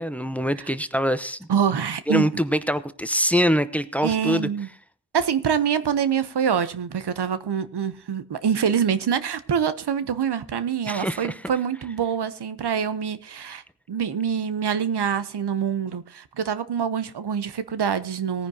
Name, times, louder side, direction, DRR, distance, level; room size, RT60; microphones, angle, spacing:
voice 1, 0.0-1.5 2.1-4.5 10.9-11.3, equal, 5° left, 12 dB, 0.8 m, -24 dB
voice 2, 1.5-2.3 4.0-4.7 5.1-13.6 13.9-18.5, right 7 dB, 85° right, 13 dB, 0.8 m, -25 dB
18.5 x 9.9 x 2.8 m, 0.41 s
wide cardioid pair, 60°, 39 cm